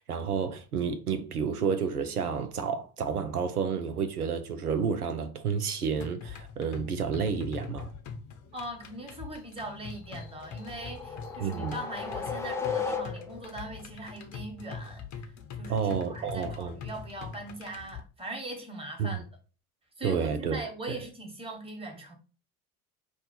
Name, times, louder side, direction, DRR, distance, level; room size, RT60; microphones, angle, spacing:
voice 1, 0.0-7.9 11.4-11.8 15.7-16.8 19.0-19.2 20.0-20.6, right 6 dB, 85° right, 0.6 m, -30 dB
sound 1, 6.0-18.0, left 5 dB, 40° left, 0.8 m, -43 dB
voice 2, 8.5-15.3 15.6-19.3 20.0-22.1, right 1 dB, 15° right, 1.4 m, -40 dB
sound 2, 10.3-13.6, left 5 dB, 5° left, 0.4 m, -35 dB
5.2 x 2.3 x 4.2 m
figure-of-eight pair, 60°, 44 cm